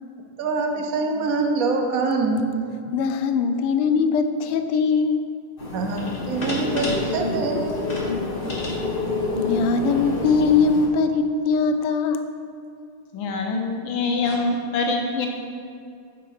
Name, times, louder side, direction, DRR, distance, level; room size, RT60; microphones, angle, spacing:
voice 1, 0.4-2.5 5.7-7.9, right 3 dB, 70° right, 3 dB, 0.8 m, -24 dB
voice 2, 2.9-5.2 9.4-12.3, left 5 dB, 85° left, 8 dB, 1.5 m, -21 dB
sound 1, 5.6-10.9, left 3 dB, 35° left, 1.0 m, -27 dB
voice 3, 13.1-15.3, left 3 dB, 70° left, 2 dB, 1.6 m, -24 dB
6.9 x 6.2 x 4.8 m, 2.4 s
omnidirectional pair, 2.4 m